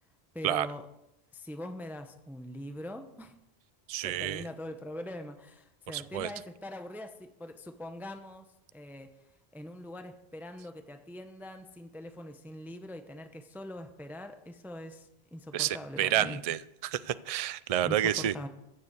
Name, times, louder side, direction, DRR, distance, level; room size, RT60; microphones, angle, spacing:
voice 1, 0.3-0.8 1.3-3.4 4.0-9.2 9.5-16.4 17.8-18.5, left 1 dB, ahead, 7 dB, 0.8 m, -43 dB
voice 2, 3.9-4.4 5.9-6.3 15.5-18.3, right 11 dB, 50° right, 16 dB, 0.5 m, -30 dB
15.0 x 7.0 x 8.0 m, 0.87 s
omnidirectional pair, 1.0 m